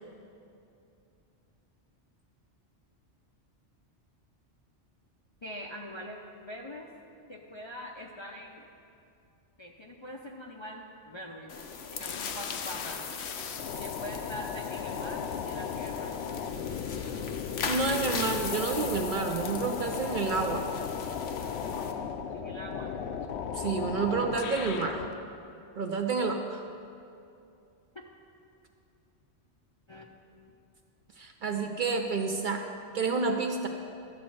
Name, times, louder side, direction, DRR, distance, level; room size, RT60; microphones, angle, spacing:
voice 1, 5.4-6.2 6.5-6.9 7.3-8.7 9.6-11.5 11.9-13.1 13.8-16.1 22.3-22.9 27.9-28.1 29.9-30.1, equal, 40° left, 0 dB, 0.4 m, -43 dB
sound 1, 11.5-21.9, left 5 dB, 90° left, 1.1 m, -39 dB
sound 2, 12.0-25.1, left 7 dB, 70° left, 0.8 m, -36 dB
voice 2, 17.7-20.6 23.5-25.0 25.8-26.6 31.2-32.6 32.9-33.7, right 4 dB, 55° right, 4 dB, 0.6 m, -29 dB
12.5 x 4.1 x 7.7 m, 2.6 s
omnidirectional pair, 1.2 m